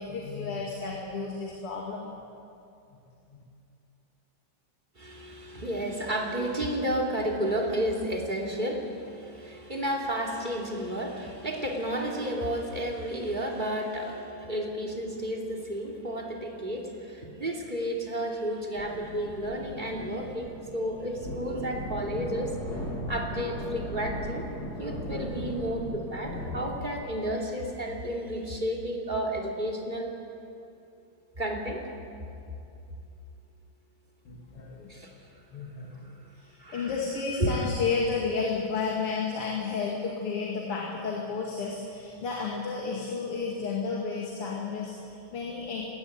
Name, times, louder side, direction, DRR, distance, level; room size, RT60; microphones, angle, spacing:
voice 1, 0.0-2.1 34.2-34.9 35.5-45.8, left 4 dB, 85° left, -3 dB, 3.3 m, -32 dB
voice 2, 5.0-22.5 23.1-24.5 24.8-30.1 31.4-31.8 34.9-35.1 36.6-36.9 37.4-37.7, right 1 dB, 20° right, -1 dB, 2.9 m, -32 dB
sound 1, 18.8-27.1, left 1 dB, 45° left, 3.4 m, -38 dB
21.0 x 17.0 x 9.6 m, 2.6 s
omnidirectional pair, 2.4 m